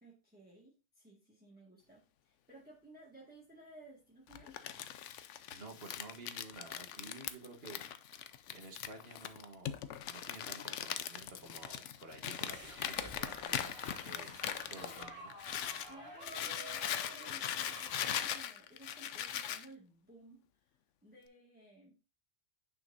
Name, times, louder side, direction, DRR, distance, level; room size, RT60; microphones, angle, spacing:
voice 1, 0.0-4.5 15.9-20.7 21.0-22.0, right 1 dB, 10° right, -6 dB, 1.9 m, -57 dB
Crumpling crinkling, 4.3-15.9 16.2-19.7, left 10 dB, 80° left, 1.0 m, -40 dB
voice 2, 5.5-7.8 8.1-9.8 10.1-15.3, right 3 dB, 60° right, 4 dB, 1.6 m, -52 dB
sound 1, 12.2-18.2, right 1 dB, 25° right, 2.7 m, -51 dB
9.7 x 5.7 x 2.7 m, 0.32 s
omnidirectional pair, 1.2 m